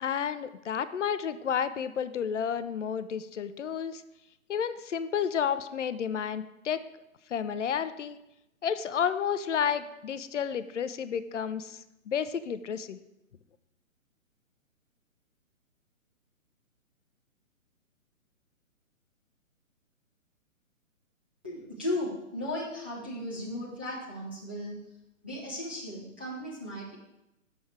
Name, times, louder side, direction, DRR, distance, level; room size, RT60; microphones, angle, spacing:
voice 1, 0.0-4.0 4.5-6.8 7.3-8.2 8.6-13.0, left 7 dB, 60° left, 13 dB, 0.6 m, -31 dB
voice 2, 21.4-24.8 25.2-27.0, left 1 dB, 10° right, -9 dB, 0.4 m, -36 dB
7.4 x 6.2 x 4.5 m, 0.88 s
figure-of-eight pair, 135°, 41 cm